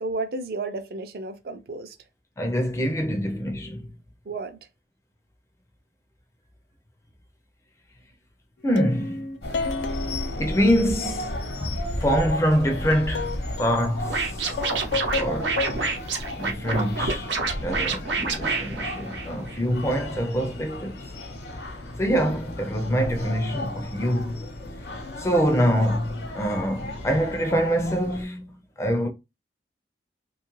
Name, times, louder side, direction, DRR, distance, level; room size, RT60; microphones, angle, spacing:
voice 1, 0.0-2.0 4.3-4.6, right 3 dB, 55° right, 0.4 m, -32 dB
voice 2, 2.4-3.9 8.6-9.3 10.4-11.3 11.6-14.5 15.2-15.6 16.4-21.0 22.0-24.5 25.2-29.1, equal, 15° left, 0.4 m, -25 dB
sound 1, 8.8-11.6 11.9-13.8 14.3-15.9 16.2-16.3, left 4 dB, 85° left, 0.4 m, -32 dB
sound 2, 9.4-28.2, left 1 dB, 65° left, 0.8 m, -34 dB
Scratching (performance technique), 14.1-19.6, right 4 dB, 85° right, 0.7 m, -28 dB
2.8 x 2.3 x 3.0 m
head